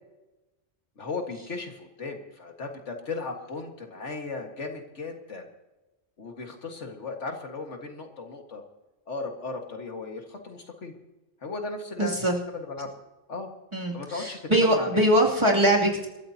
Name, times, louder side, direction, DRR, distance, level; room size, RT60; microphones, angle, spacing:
voice 1, 1.0-5.5 6.2-8.6 9.1-10.9 11.4-12.3 12.5-12.9 13.3-13.5 13.9-15.0, left 3 dB, 80° left, 3 dB, 2.1 m, -36 dB
voice 2, 12.0-12.4 13.7-16.1, right 1 dB, 25° right, -2 dB, 2.8 m, -22 dB
27.5 x 13.5 x 2.8 m, 1.1 s
omnidirectional pair, 1.2 m